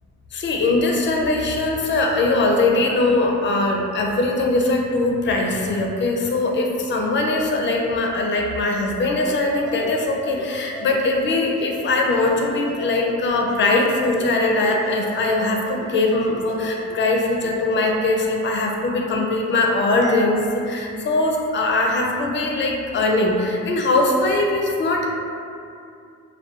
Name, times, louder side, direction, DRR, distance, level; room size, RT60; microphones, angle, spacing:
voice 1, 0.3-25.1, left 2 dB, 40° left, 0 dB, 0.4 m, -21 dB
sound 1, 9.2-18.0, right 2 dB, 40° right, 0.6 m, -38 dB
2.7 x 2.2 x 2.3 m, 2.5 s
cardioid pair, 90°, 30 cm